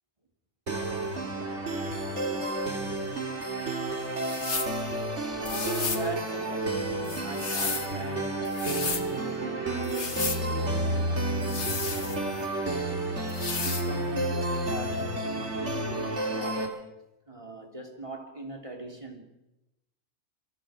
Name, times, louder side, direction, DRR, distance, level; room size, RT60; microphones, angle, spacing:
sound 1, 0.7-16.7, right 2 dB, 90° right, 2.9 m, -31 dB
sound 2, 4.2-4.8 5.4-6.1 7.0-7.9 8.4-9.1 9.8-10.4 11.4-12.5 13.3-13.9, left 5 dB, 90° left, 1.8 m, -33 dB
voice 1, 5.4-13.0 13.8-16.8 17.3-19.2, right 2 dB, 30° right, 3.0 m, -41 dB
27.0 x 23.0 x 4.9 m
omnidirectional pair, 1.2 m